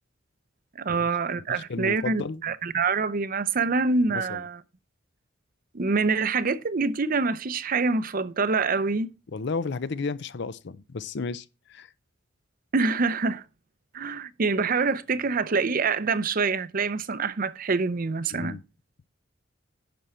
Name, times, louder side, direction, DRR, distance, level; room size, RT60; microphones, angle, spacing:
voice 1, 0.8-4.6 5.7-9.1 12.7-13.4 13.9-18.6, right 4 dB, 45° right, 0.6 m, -26 dB
voice 2, 1.5-2.4 4.1-4.4 9.3-11.9 18.3-18.6, left 4 dB, 60° left, 0.5 m, -33 dB
10.5 x 6.1 x 4.3 m
head